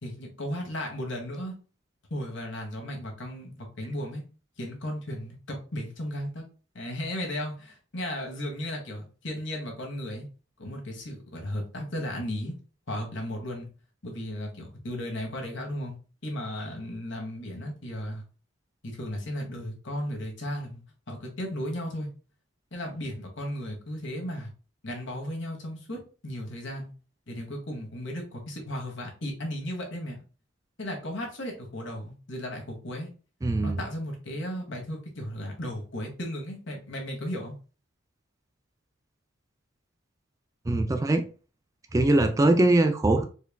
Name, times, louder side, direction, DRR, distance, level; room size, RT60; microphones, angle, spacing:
voice 1, 0.0-1.5 2.1-4.2 4.6-6.4 6.7-10.3 10.6-12.5 12.9-13.7 14.0-18.2 18.8-20.8 21.1-22.1 22.7-24.5 24.8-26.9 27.3-30.2 30.8-33.1 33.6-37.5, left 1 dB, 65° left, 2 dB, 1.4 m, -35 dB
voice 2, 33.4-33.8 40.7-41.2 41.9-43.2, right 2 dB, 15° right, 6 dB, 0.3 m, -22 dB
4.4 x 3.5 x 2.3 m, 0.35 s
head